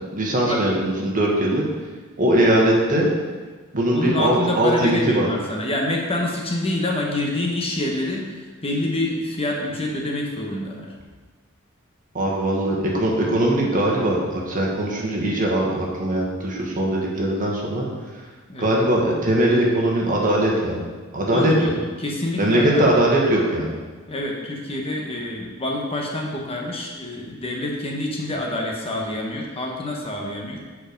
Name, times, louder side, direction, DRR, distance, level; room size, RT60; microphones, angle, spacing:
voice 1, 0.1-1.6 2.2-3.1 3.7-5.3 12.1-17.8 18.6-20.8 21.1-21.5 22.4-23.7, right 1 dB, 40° right, -2 dB, 1.5 m, -20 dB
voice 2, 3.9-10.9 18.5-18.7 21.3-22.9 24.1-30.6, left 1 dB, 30° left, -1 dB, 1.0 m, -27 dB
7.7 x 4.8 x 5.2 m, 1.4 s
head